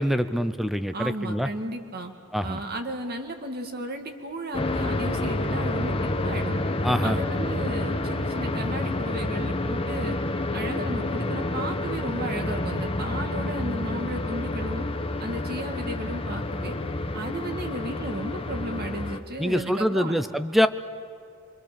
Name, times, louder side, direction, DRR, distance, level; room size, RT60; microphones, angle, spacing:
voice 1, 0.0-1.5 2.3-2.6 6.8-7.2 19.4-20.7, equal, ahead, 12 dB, 0.5 m, -24 dB
voice 2, 0.9-2.1 2.4-5.9 6.2-6.6 7.0-10.2 10.5-14.8 15.2-16.8 17.1-20.2, right 1 dB, 45° right, 5 dB, 2.0 m, -34 dB
sound 1, 4.5-19.2, left 2 dB, 25° left, 1.0 m, -29 dB
27.5 x 25.0 x 6.9 m, 2.4 s
head